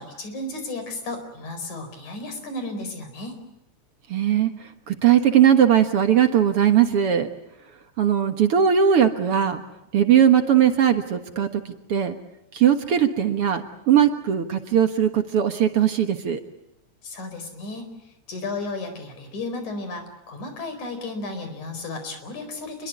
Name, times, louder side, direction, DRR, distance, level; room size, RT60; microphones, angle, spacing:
voice 1, 0.0-3.4 17.0-22.9, left 2 dB, 75° left, 8 dB, 6.0 m, -34 dB
voice 2, 4.1-4.5 4.9-7.3 8.0-9.6 9.9-11.6 11.9-12.2 12.5-16.4, right 9 dB, 55° right, 6 dB, 2.1 m, -19 dB
28.0 x 22.5 x 8.4 m, 0.83 s
omnidirectional pair, 3.4 m